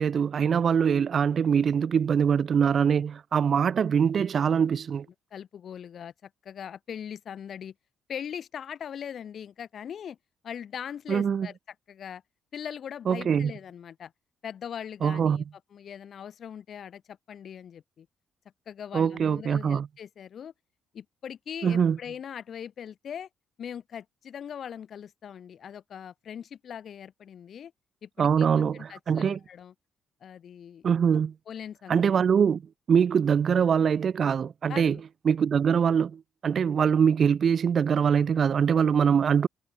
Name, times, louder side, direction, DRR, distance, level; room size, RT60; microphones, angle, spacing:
voice 1, 0.0-5.1 11.1-11.5 13.1-13.5 15.0-15.4 18.9-19.9 21.6-22.0 28.2-29.4 30.8-31.3 31.9-32.6 32.9-35.0 35.3-39.5, right 7 dB, 50° right, 1.8 m, -23 dB
voice 2, 5.3-7.7 8.1-10.2 10.4-11.5 11.9-12.2 12.5-14.1 14.4-15.4 15.7-18.1 18.7-20.5 20.9-23.3 23.6-27.7 28.0-29.7 30.2-30.8 31.5-32.1 34.7-35.0, left 8 dB, 60° left, 3.6 m, -40 dB
cardioid pair, 90°, 0 cm